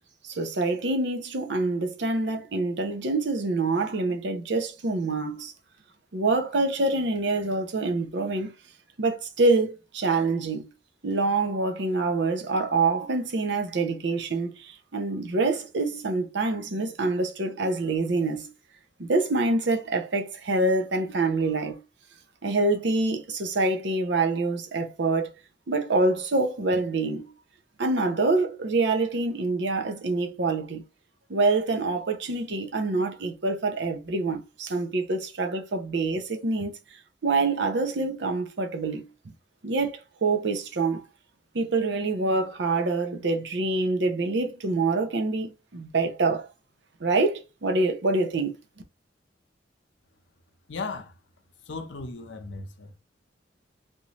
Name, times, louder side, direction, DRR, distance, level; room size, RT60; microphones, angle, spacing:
voice 1, 0.2-5.5 6.1-8.5 9.0-10.7 11.0-18.5 19.0-21.8 22.4-25.3 25.7-27.3 27.8-30.8 31.3-39.3 39.6-41.0 41.5-46.5 47.0-48.6, right 3 dB, 65° right, 0.7 m, -26 dB
voice 2, 50.7-51.1 51.7-52.9, left 3 dB, 75° left, 0.7 m, -36 dB
3.6 x 2.7 x 3.0 m
head